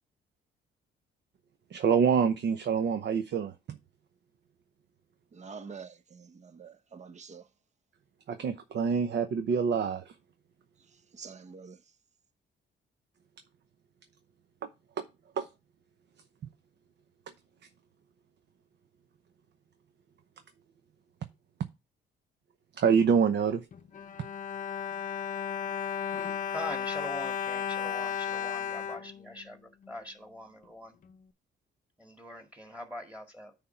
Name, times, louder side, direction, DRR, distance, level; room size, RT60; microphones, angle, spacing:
voice 1, 1.7-3.8 8.3-10.1 14.6-14.7 15.0-15.1 15.4-15.5 22.8-23.6, right 6 dB, 65° right, 0.9 m, -26 dB
voice 2, 5.3-7.5 11.1-11.8, right 5 dB, 35° right, 0.8 m, -46 dB
Bowed string instrument, 23.7-29.9 30.6-30.7 31.0-31.2, left 8 dB, 40° left, 0.7 m, -34 dB
voice 3, 26.5-29.6 29.9-30.9 32.0-33.5, left 1 dB, 5° right, 1.9 m, -42 dB
9.4 x 3.6 x 5.8 m
cardioid pair, 90°, 20 cm